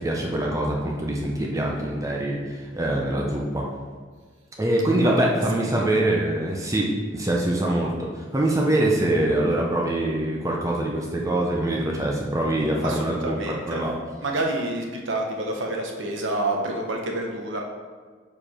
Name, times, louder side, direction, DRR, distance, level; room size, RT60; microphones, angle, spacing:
voice 1, 0.0-3.7 4.6-13.9, right 1 dB, 15° right, -1 dB, 0.6 m, -24 dB
voice 2, 5.0-6.0 12.8-13.8 14.2-17.6, right 2 dB, 75° right, 1 dB, 0.9 m, -29 dB
5.0 x 4.8 x 4.3 m, 1.5 s
head